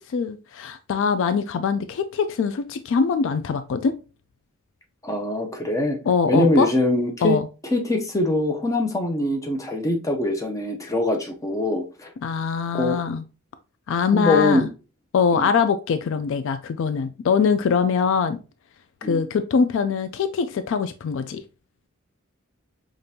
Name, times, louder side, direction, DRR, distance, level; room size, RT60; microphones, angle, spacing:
voice 1, 0.1-4.0 6.1-6.7 7.2-7.4 12.2-13.2 13.9-14.7 15.1-18.4 19.0-21.4, left 5 dB, 60° left, 11 dB, 0.3 m, -23 dB
voice 2, 5.0-6.0 6.3-7.4 7.7-12.1 12.7-13.0 14.1-14.7 15.3-15.5 19.0-19.2, left 2 dB, 15° left, 2 dB, 0.6 m, -23 dB
5.1 x 2.5 x 2.7 m, 0.32 s
head